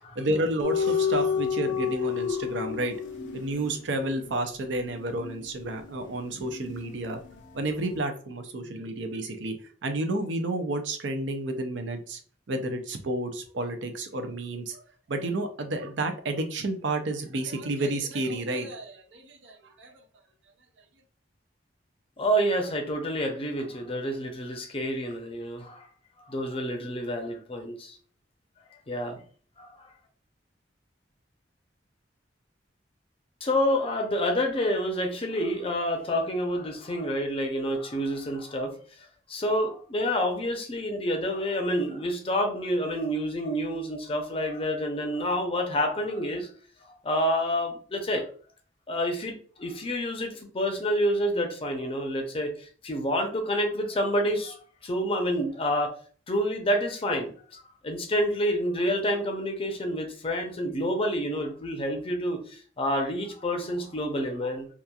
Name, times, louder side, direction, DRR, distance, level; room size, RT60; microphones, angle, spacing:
voice 1, 0.2-3.0 3.3-7.2 7.5-9.5 9.8-12.2 12.5-14.8 15.1-19.9, right 2 dB, 70° right, 5 dB, 0.5 m, -31 dB
sound 1, 0.6-7.4 7.7-7.9, left 7 dB, 90° left, 0.5 m, -31 dB
voice 2, 22.2-25.9 26.2-28.0 28.9-29.2 29.6-29.7 33.4-38.7 39.3-46.5 47.0-48.3 48.9-52.5 52.8-54.6 54.8-55.9 56.3-64.7, equal, 30° left, 3 dB, 0.6 m, -28 dB
2.8 x 2.4 x 2.3 m, 0.43 s
head